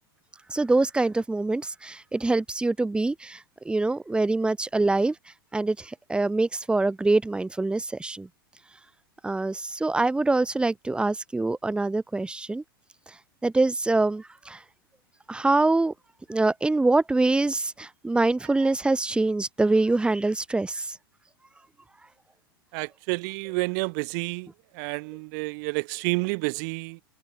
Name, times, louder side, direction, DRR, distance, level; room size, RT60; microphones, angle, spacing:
voice 1, 0.5-5.2 5.5-8.3 9.2-12.6 13.4-14.6 15.3-15.9 16.3-21.0, right 2 dB, 10° right, 2.2 m, -24 dB
voice 2, 22.7-24.5 24.7-27.0, right 33 dB, 55° right, 1.9 m, -29 dB
hypercardioid pair, 100°, 12 cm